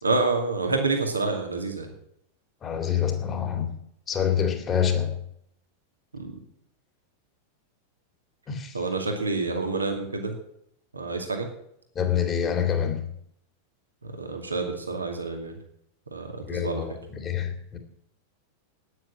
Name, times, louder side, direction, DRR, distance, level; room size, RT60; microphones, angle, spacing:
voice 1, 0.0-1.9 6.1-6.4 8.7-10.3 10.9-11.5 14.0-15.5 16.1-17.0, right 3 dB, 80° right, 2.4 m, -28 dB
voice 2, 2.6-3.7 4.1-5.2 8.5-8.7 12.0-13.1 16.5-17.8, left 8 dB, 25° left, 2.4 m, -26 dB
9.9 x 9.1 x 9.7 m
figure-of-eight pair, 90°, 0 cm